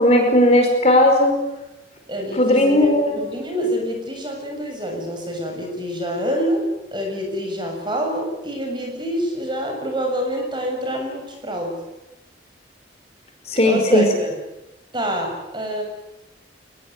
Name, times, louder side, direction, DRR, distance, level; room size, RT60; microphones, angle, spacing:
voice 1, 0.0-1.3 2.4-3.1 13.5-14.0, left 1 dB, 35° left, 3 dB, 4.9 m, -16 dB
voice 2, 2.1-11.8 13.6-14.4 14.9-15.8, equal, 25° right, 2 dB, 6.9 m, -26 dB
23.5 x 21.0 x 9.8 m, 0.94 s
head